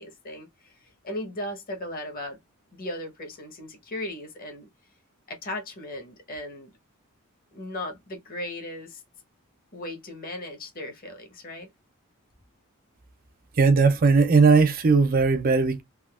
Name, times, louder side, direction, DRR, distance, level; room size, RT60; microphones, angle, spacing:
voice 1, 0.0-2.4 2.7-4.7 5.3-6.7 7.5-9.0 9.7-11.7, left 1 dB, 45° left, 1.0 m, -37 dB
voice 2, 13.6-15.8, right 4 dB, 40° right, 0.5 m, -18 dB
3.5 x 2.5 x 2.4 m
head